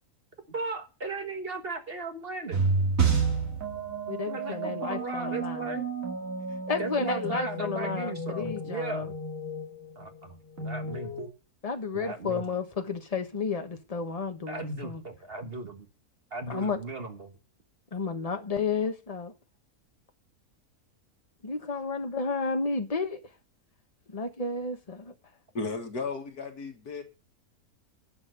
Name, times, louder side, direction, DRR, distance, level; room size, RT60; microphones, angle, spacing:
voice 1, 0.5-2.7 4.3-5.9 6.8-9.1 9.9-11.1 11.9-12.4 14.5-15.9 16.3-17.3, right 3 dB, 40° right, 1.6 m, -37 dB
sound 1, 2.5-11.3, right 4 dB, 60° right, 2.7 m, -31 dB
voice 2, 4.1-5.8 6.7-9.1 11.6-15.0 16.5-16.8 17.9-19.3 21.4-23.2 24.1-25.1, left 4 dB, 25° left, 1.3 m, -32 dB
voice 3, 25.5-27.0, left 4 dB, 80° left, 2.4 m, -34 dB
11.0 x 5.8 x 8.0 m
omnidirectional pair, 1.6 m